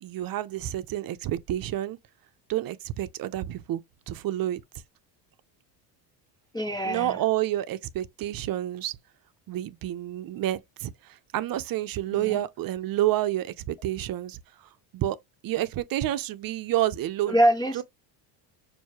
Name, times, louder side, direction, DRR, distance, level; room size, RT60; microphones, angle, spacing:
voice 1, 0.0-2.0 2.5-3.8 4.1-4.6 6.8-9.0 9.5-14.4 14.9-15.2 15.4-17.4 17.7-17.8, right 13 dB, 45° right, 0.6 m, -29 dB
voice 2, 6.5-7.2 12.1-12.4 17.3-17.8, right 1 dB, 10° left, 0.3 m, -24 dB
6.3 x 2.7 x 2.9 m
supercardioid pair, 105°, 49 cm